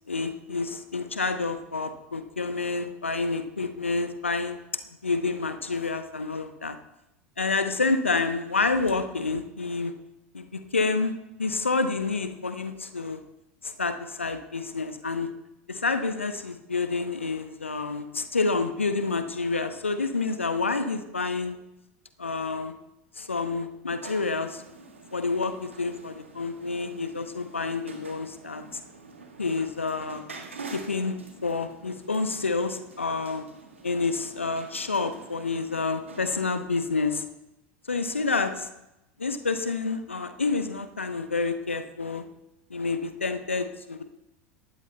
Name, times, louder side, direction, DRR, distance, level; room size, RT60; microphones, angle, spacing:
voice 1, 0.1-4.6 5.0-6.8 7.4-9.9 10.3-13.2 13.6-15.3 15.7-21.6 22.2-22.7 23.2-24.6 25.1-28.8 29.4-30.2 30.7-31.2 31.4-33.5 33.8-37.2 37.9-38.7 39.2-42.2 42.7-44.0, left 3 dB, 85° left, 9 dB, 0.9 m, -28 dB
sound 1, 24.0-36.7, right 3 dB, 80° right, 1.7 m, -46 dB
19.0 x 12.5 x 2.3 m, 0.90 s
figure-of-eight pair, 80°, 7 cm